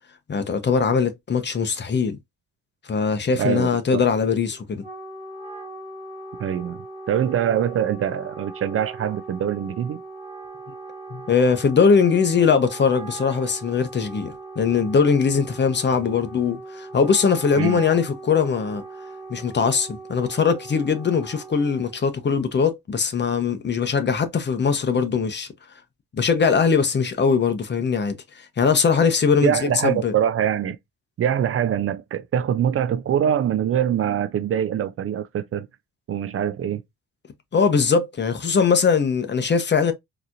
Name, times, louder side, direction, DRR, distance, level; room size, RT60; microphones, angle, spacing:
voice 1, 0.3-2.2 2.9-4.8 11.1-18.8 19.3-25.5 26.1-30.1 37.5-39.9, left 5 dB, 35° left, 0.9 m, -21 dB
voice 2, 3.4-4.0 6.4-6.8 7.1-10.0 17.6-17.8 29.4-30.8 31.2-35.7 36.1-36.8, right 9 dB, 45° right, 0.4 m, -23 dB
Wind instrument woodwind instrument, 4.6-22.1, right 3 dB, 20° right, 1.8 m, -39 dB
3.9 x 2.9 x 2.5 m
cardioid pair, 90°, 30 cm